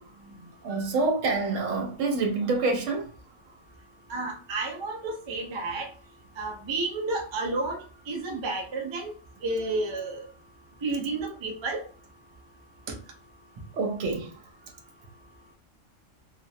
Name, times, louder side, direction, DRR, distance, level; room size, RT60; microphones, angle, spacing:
voice 1, 0.0-3.1 13.7-14.4, right 3 dB, 85° right, 1.0 m, -27 dB
voice 2, 4.1-5.9 6.4-9.1 9.4-10.3 10.8-11.8, right 2 dB, 45° right, 0.4 m, -31 dB
2.4 x 2.1 x 2.6 m
omnidirectional pair, 1.3 m